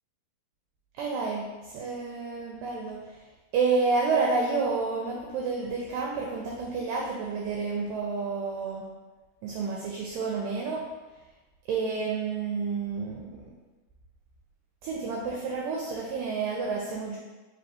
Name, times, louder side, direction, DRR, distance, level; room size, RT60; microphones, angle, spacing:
voice 1, 1.0-3.2 3.5-8.8 9.4-10.8 11.7-13.4 14.8-17.2, right 4 dB, 85° right, -2 dB, 2.0 m, -30 dB
5.3 x 3.3 x 2.8 m, 1.2 s
omnidirectional pair, 4.4 m